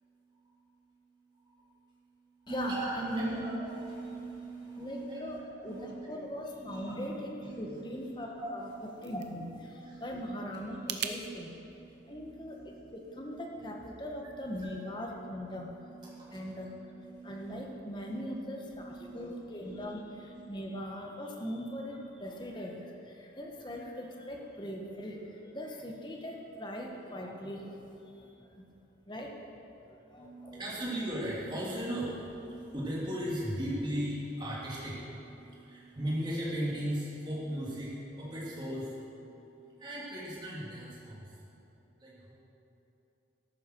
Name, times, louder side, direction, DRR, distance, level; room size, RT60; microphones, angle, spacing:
voice 1, 0.0-6.1 6.6-7.1 7.4-9.3 9.7-10.4 10.6-14.7 15.0-18.1 18.7-20.4 30.2-41.4 42.0-42.4, right 1 dB, 25° right, -6 dB, 2.9 m, -40 dB
voice 2, 2.5-3.4 4.7-5.4 5.6-8.7 9.0-11.5 12.1-15.7 16.3-16.8 17.2-28.7 29.1-29.3 29.8-30.6, equal, 25° left, 0 dB, 1.3 m, -40 dB
sound 1, 8.5-11.2, right 9 dB, 70° right, 0.8 m, -42 dB
14.0 x 11.5 x 4.6 m, 2.9 s
head